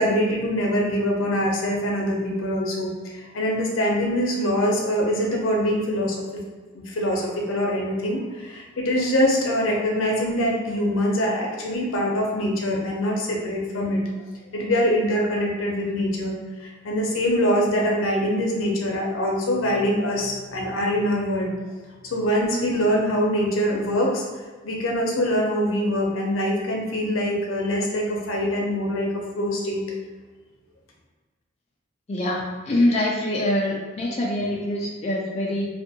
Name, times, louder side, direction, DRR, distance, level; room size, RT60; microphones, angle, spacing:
voice 1, 0.0-6.4 6.7-14.0 14.5-21.5 22.0-24.2 24.6-29.8, equal, 80° left, -1 dB, 0.6 m, -24 dB
voice 2, 32.1-35.7, left 1 dB, 35° left, -3 dB, 0.3 m, -24 dB
2.6 x 2.5 x 2.6 m, 1.4 s
head